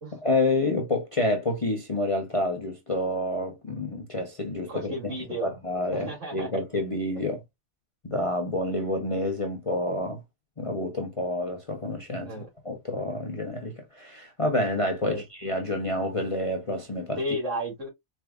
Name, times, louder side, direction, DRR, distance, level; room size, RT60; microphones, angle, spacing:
voice 1, 0.1-5.1 5.4-7.4 8.0-10.2 10.6-17.2, left 1 dB, 30° left, 0.8 m, -28 dB
voice 2, 4.7-5.5 5.9-6.5 12.2-12.5 15.0-15.2 17.2-17.9, equal, 65° right, 2.6 m, -33 dB
4.6 x 3.5 x 2.3 m
omnidirectional pair, 1.4 m